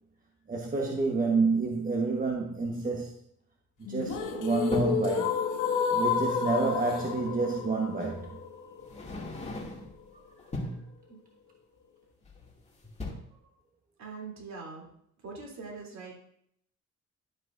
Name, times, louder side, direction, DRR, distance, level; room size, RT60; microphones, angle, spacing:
voice 1, 0.5-3.1 3.9-5.5 5.9-8.4, right 3 dB, 30° right, 1.2 m, -29 dB
sound 1, 3.9-9.9, left 7 dB, 80° left, 1.7 m, -31 dB
sound 2, 4.1-5.1 6.8-6.9 8.0-8.2 8.8-10.0 10.4-10.9 12.2-12.6 12.8-13.1, left 1 dB, 20° left, 2.4 m, -38 dB
voice 2, 14.0-14.8 15.2-16.2, right 4 dB, 65° right, 3.0 m, -42 dB
12.0 x 7.7 x 2.6 m
cardioid pair, 90°, 30 cm